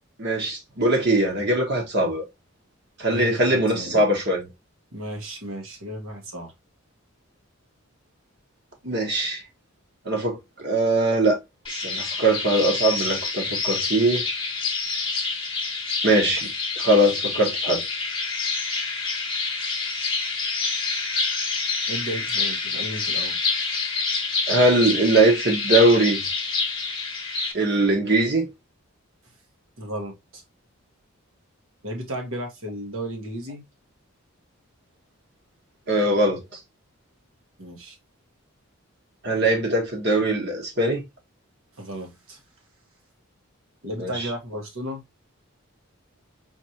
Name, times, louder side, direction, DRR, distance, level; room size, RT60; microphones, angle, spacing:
voice 1, 0.2-2.2 3.0-4.4 8.8-9.4 10.0-11.4 11.7-14.2 16.0-16.5 16.8-17.8 24.5-26.2 27.5-28.5 35.9-36.4 39.2-41.0 44.0-44.3, right 1 dB, 50° right, 1.2 m, -21 dB
voice 2, 3.1-4.0 4.9-6.5 21.9-23.4 29.8-30.4 31.8-33.6 37.6-38.0 41.8-42.4 43.8-45.0, right 1 dB, 75° right, 1.3 m, -34 dB
sound 1, 11.7-27.5, left 4 dB, 25° left, 0.9 m, -27 dB
4.2 x 3.0 x 2.9 m
head